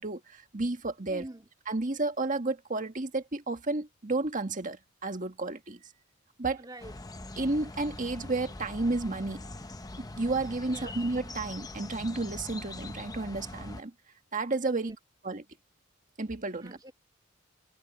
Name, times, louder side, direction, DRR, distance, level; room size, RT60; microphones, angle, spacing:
voice 1, 0.0-1.2 1.7-5.8 6.4-6.6 7.4-9.5 10.0-13.9 14.3-15.0 15.2-15.4 16.2-16.8, right 2 dB, 40° right, 1.7 m, -32 dB
voice 2, 1.0-1.5 6.5-6.9 10.7-11.0 14.7-15.0 16.6-16.9, right 1 dB, 20° right, 2.5 m, -46 dB
sound 1, 6.8-13.8, left 2 dB, 20° left, 0.8 m, -42 dB
head